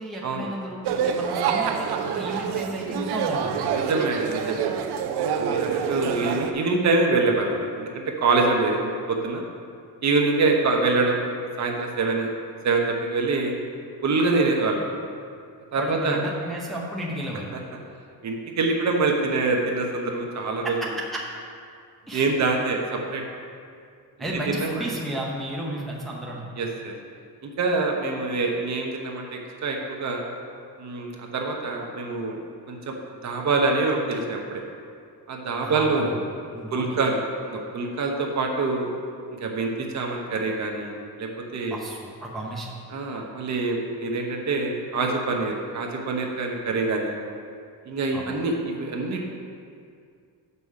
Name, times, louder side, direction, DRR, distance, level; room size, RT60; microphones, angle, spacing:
voice 1, 0.0-3.7 15.8-17.5 20.6-21.2 22.1-22.3 24.2-26.5 35.6-36.2 36.5-36.9 41.7-42.7 48.1-48.4, right 1 dB, ahead, -4 dB, 0.8 m, -33 dB
sound 1, 0.8-6.5, right 7 dB, 85° right, 0.7 m, -26 dB
voice 2, 3.7-4.6 5.3-9.4 10.0-11.2 11.6-12.3 12.6-13.5 14.0-14.9 15.7-16.2 18.2-20.7 22.1-23.2 24.5-24.8 26.6-26.9 27.4-30.2 30.8-32.4 32.7-32.9 33.2-34.6 35.3-36.1 36.7-38.9 39.3-41.8 42.9-47.1 47.8-49.3, right 3 dB, 45° right, 1 dB, 0.9 m, -25 dB
6.7 x 5.5 x 6.5 m, 2.3 s
cardioid pair, 175°, 38 cm